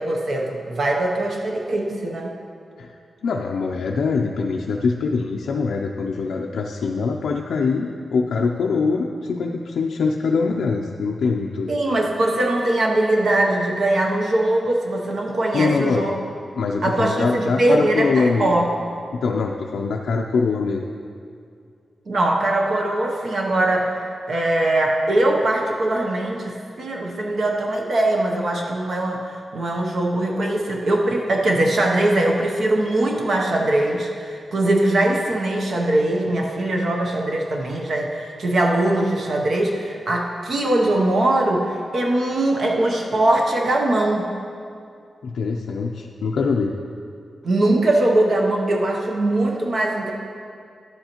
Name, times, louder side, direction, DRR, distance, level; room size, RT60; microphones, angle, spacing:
voice 1, 0.0-2.3 11.7-16.1 16.8-18.7 22.1-44.3 47.4-50.1, right 1 dB, 50° right, 0 dB, 0.7 m, -21 dB
voice 2, 3.2-11.7 15.5-16.1 16.5-18.5 19.1-20.8 45.2-46.7, left 4 dB, 85° left, 0 dB, 0.4 m, -23 dB
11.0 x 7.9 x 2.9 m, 2.4 s
wide cardioid pair, 180°, 0 cm